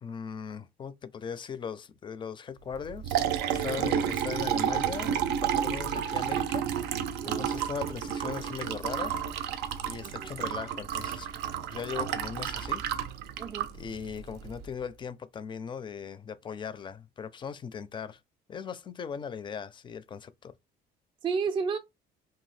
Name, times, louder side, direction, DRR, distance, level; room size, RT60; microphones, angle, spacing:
voice 1, 0.0-3.2 3.5-6.7 7.3-9.2 9.8-11.3 11.7-12.8 13.7-18.2 18.5-20.5, left 6 dB, 30° left, 0.4 m, -39 dB
Liquid, 2.7-14.7, right 9 dB, 85° right, 0.4 m, -31 dB
voice 2, 21.2-21.8, right 5 dB, 30° right, 0.4 m, -32 dB
2.7 x 2.3 x 3.2 m
cardioid pair, 110°, 17 cm